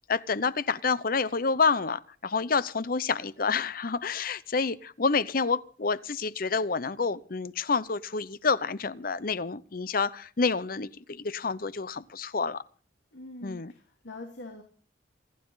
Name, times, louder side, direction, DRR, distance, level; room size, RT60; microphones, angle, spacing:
voice 1, 0.1-12.6 13.4-13.7, left 4 dB, 50° left, 0.8 m, -28 dB
voice 2, 13.1-14.6, left 2 dB, 90° left, 3.0 m, -44 dB
27.5 x 11.5 x 4.0 m
head